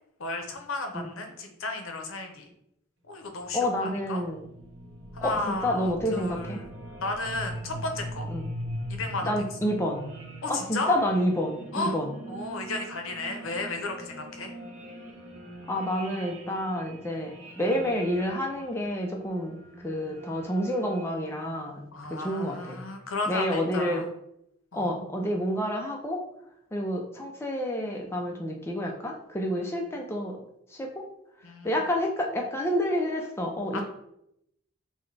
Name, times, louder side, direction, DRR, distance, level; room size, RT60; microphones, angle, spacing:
voice 1, 0.2-2.4 3.1-4.2 5.1-6.7 7.0-8.3 8.9-9.3 10.4-11.0 11.7-12.0 12.3-14.5 21.9-24.1 24.7-24.9 29.6-30.0 31.4-31.8 33.7-33.8, left 2 dB, 80° left, 4 dB, 0.7 m, -34 dB
sound 1, 3.4-21.8, right 1 dB, 65° right, 0.8 m, -42 dB
voice 2, 3.5-4.4 5.2-6.6 8.3-8.5 9.2-10.1 10.5-12.1 15.7-19.6 19.8-21.8 22.1-22.8 23.3-24.0 24.7-26.2 26.7-30.4 30.7-31.0 31.6-33.8, equal, 10° left, 0 dB, 0.4 m, -29 dB
6.1 x 2.1 x 3.2 m, 0.78 s
head